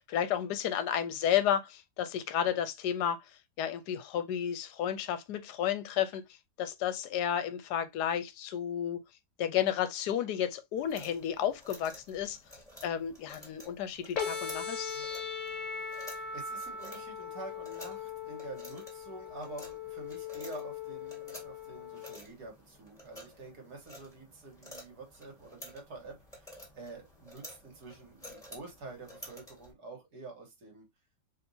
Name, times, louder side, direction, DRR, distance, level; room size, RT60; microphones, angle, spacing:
voice 1, 0.0-3.2 3.6-6.2 6.6-9.0 9.4-12.4 12.8-14.9, left 9 dB, 70° left, 1.2 m, -32 dB
sound 1, 10.8-29.7, equal, ahead, 1.4 m, -52 dB
sound 2, 14.2-22.2, left 6 dB, 50° left, 1.2 m, -39 dB
voice 2, 15.8-30.9, right 3 dB, 65° right, 2.0 m, -48 dB
4.3 x 3.5 x 2.7 m
omnidirectional pair, 1.9 m